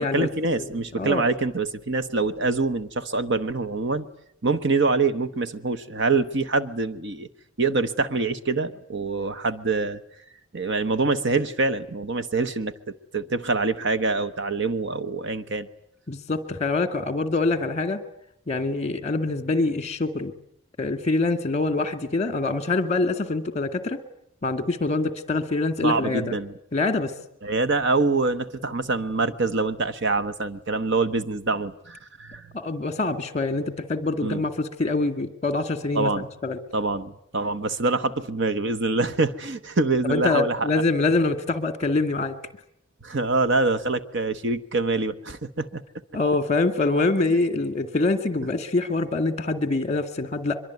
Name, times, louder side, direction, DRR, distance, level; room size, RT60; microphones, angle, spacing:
voice 1, 0.0-4.1 4.4-7.3 7.6-10.0 10.5-15.7 25.8-26.5 27.4-32.5 34.2-34.4 35.9-36.2 36.7-40.8 43.0-45.8, right 3 dB, 55° right, 13 dB, 1.1 m, -25 dB
voice 2, 16.1-18.0 18.5-20.3 20.8-24.0 24.4-26.4 26.7-27.1 32.5-36.6 40.1-42.3 46.1-50.6, left 3 dB, 30° left, 10 dB, 2.1 m, -25 dB
24.0 x 22.5 x 9.5 m, 0.72 s
head